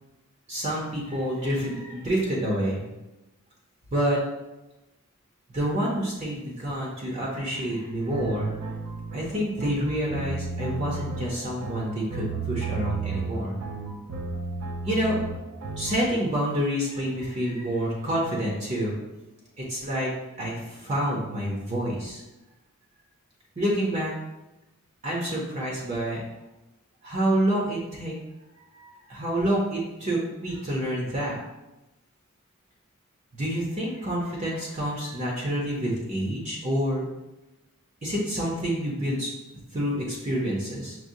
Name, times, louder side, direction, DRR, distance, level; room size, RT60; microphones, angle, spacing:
voice 1, 0.5-2.9 3.9-4.2 5.5-8.5 9.1-13.6 14.8-15.2 15.8-19.0 19.6-20.1 20.4-22.2 23.6-24.1 25.0-26.2 27.0-28.2 28.7-31.4 33.3-37.1 38.0-39.3 39.7-41.0, equal, 30° right, -4 dB, 0.7 m, -28 dB
sound 1, 8.1-16.0, right 4 dB, 70° right, 0.6 m, -33 dB
6.1 x 2.1 x 2.6 m, 1.0 s
head